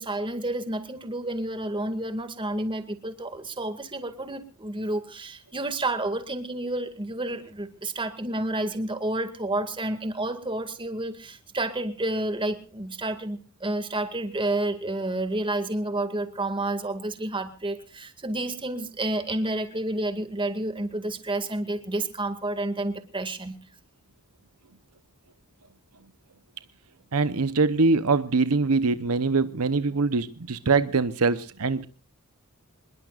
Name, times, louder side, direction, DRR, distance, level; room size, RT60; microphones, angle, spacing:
voice 1, 0.0-23.6, right 2 dB, 20° right, 2.2 m, -30 dB
voice 2, 27.1-31.9, right 4 dB, 75° right, 0.9 m, -23 dB
26.0 x 21.5 x 2.5 m
head